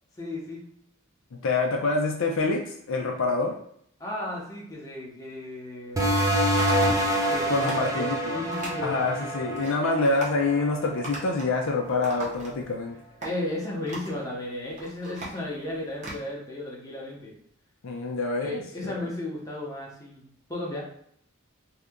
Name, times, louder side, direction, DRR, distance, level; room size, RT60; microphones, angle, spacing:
voice 1, 0.2-0.7 4.0-6.1 7.3-9.5 13.2-17.3 18.4-20.8, left 1 dB, 15° left, -4 dB, 0.8 m, -34 dB
voice 2, 1.3-3.5 7.5-8.4 8.8-13.0 17.8-19.1, left 3 dB, 65° left, 1 dB, 0.4 m, -26 dB
sound 1, 6.0-11.2, right 1 dB, 15° right, 0.4 m, -26 dB
sound 2, 6.0-6.3 6.6-7.1 7.4-7.9 8.5-8.8 9.3-9.7 10.1-10.4 11.0-11.6 11.8-12.8 13.2-13.3 13.9-14.2 14.6-16.2, right 2 dB, 35° right, 0.8 m, -38 dB
2.8 x 2.4 x 3.5 m, 0.67 s
head